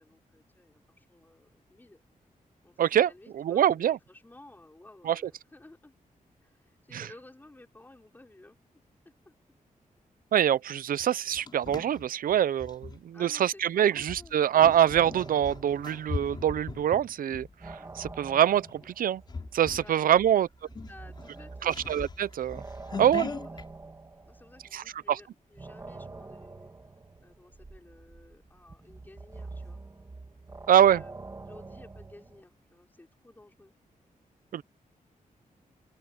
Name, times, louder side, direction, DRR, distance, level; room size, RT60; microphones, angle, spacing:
voice 1, 0.0-2.0 2.6-5.9 6.4-9.3 13.1-14.4 19.8-20.2 20.6-22.1 23.2-26.7 27.2-29.8 30.8-31.2 31.5-33.7, left 2 dB, 15° left, 5.4 m, -54 dB
voice 2, 2.8-4.0 5.1-5.2 6.9-7.1 10.3-17.5 18.0-19.2 19.5-20.5 21.6-22.6 23.0-23.3 24.7-25.2 30.7-31.0 34.5-34.6, right 10 dB, 90° right, 0.6 m, -24 dB
sound 1, 11.0-13.0 13.9-18.2 18.7-18.9 19.3-20.0 20.3-20.4 20.7-23.7, left 4 dB, 30° left, 4.9 m, -40 dB
sound 2, 14.9-16.8 17.1-25.0 25.5-32.4, right 3 dB, 20° right, 2.0 m, -46 dB
open air
wide cardioid pair, 175°, 14 cm